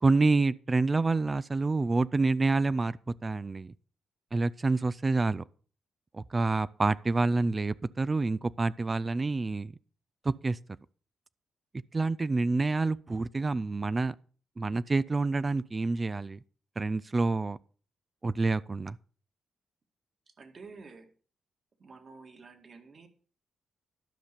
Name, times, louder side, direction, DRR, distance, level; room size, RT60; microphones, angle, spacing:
voice 1, 0.0-3.7 4.3-5.4 6.1-9.7 10.2-10.6 11.9-14.1 14.6-16.4 16.8-17.6 18.2-19.0, right 3 dB, 30° right, 0.4 m, -27 dB
voice 2, 20.4-21.1 21.8-23.1, right 4 dB, 45° right, 1.9 m, -50 dB
12.0 x 5.7 x 6.7 m
cardioid pair, 85°, 0 cm